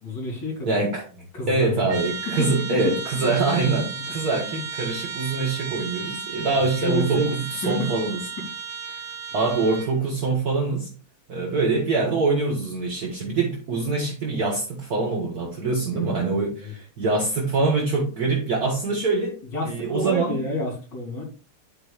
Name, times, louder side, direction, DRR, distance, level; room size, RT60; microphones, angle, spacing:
voice 1, 0.0-0.8 1.3-1.8 2.3-2.9 3.9-4.1 4.5-4.6 6.8-7.4 7.6-7.9 8.4-8.5 15.9-16.7 19.5-21.2, left 1 dB, 55° left, -3 dB, 3.8 m, -29 dB
voice 2, 0.7-1.0 1.5-8.2 8.9-9.0 9.3-10.9 11.3-19.4 19.6-20.4, right 3 dB, 50° right, -1 dB, 1.6 m, -24 dB
Trumpet, 1.9-10.0, right 6 dB, 75° right, 0.5 m, -34 dB
11.0 x 4.9 x 2.4 m, 0.36 s
omnidirectional pair, 2.3 m